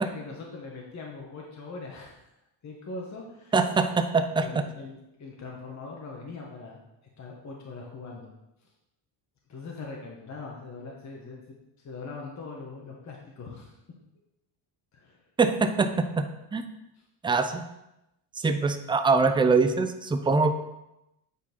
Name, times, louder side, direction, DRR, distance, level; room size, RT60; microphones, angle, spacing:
voice 1, 0.0-2.3 2.6-3.5 4.3-6.8 7.2-8.3 8.6-8.7 9.5-13.8 14.9-15.2, left 3 dB, 35° left, -1 dB, 1.4 m, -41 dB
voice 2, 3.5-4.5 15.4-16.6 17.2-17.6 18.4-20.5, right 4 dB, 10° right, 8 dB, 0.3 m, -23 dB
8.3 x 4.5 x 4.4 m, 0.90 s
cardioid pair, 115°, 50 cm